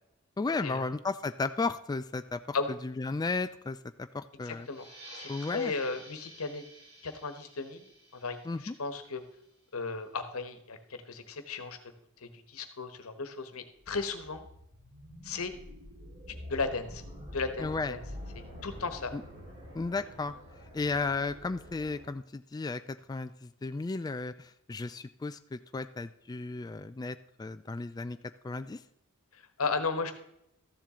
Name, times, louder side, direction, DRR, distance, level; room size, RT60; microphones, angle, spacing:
voice 1, 0.4-2.6 2.8-4.7 5.3-5.7 8.4-8.7 17.6-17.9 19.1-19.2 19.7-20.3 20.7-28.2 28.4-28.8, left 3 dB, 20° left, 10 dB, 0.3 m, -34 dB
voice 2, 4.4-4.9 5.1-6.6 7.0-9.2 9.7-11.8 12.2-14.4 15.2-15.5 16.5-17.0 17.3-18.0 18.3-19.1 29.3-30.1, left 4 dB, 75° left, 9 dB, 1.2 m, -35 dB
sound 1, 4.6-9.8, right 1 dB, 75° right, 3.5 m, -52 dB
sound 2, 13.8-22.0, equal, 55° right, 3.8 m, -47 dB
13.5 x 7.3 x 3.7 m, 0.78 s
head